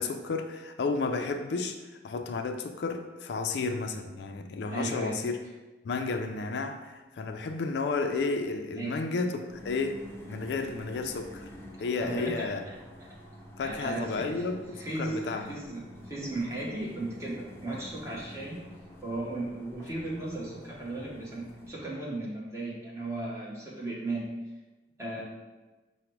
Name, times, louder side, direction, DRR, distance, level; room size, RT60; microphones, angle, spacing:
voice 1, 0.0-1.8 2.0-5.4 5.8-10.0 10.3-11.4 11.8-12.6 13.6-15.5, left 4 dB, 70° left, 6 dB, 0.3 m, -32 dB
voice 2, 4.7-5.2 8.8-9.0 12.0-12.5 13.0-13.1 13.6-14.4 14.7-18.6 19.0-24.3 25.0-25.2, right 2 dB, 15° right, -5 dB, 1.0 m, -36 dB
sound 1, 9.5-21.7, left 1 dB, 15° left, 0.6 m, -48 dB
4.9 x 2.1 x 4.5 m, 1.2 s
head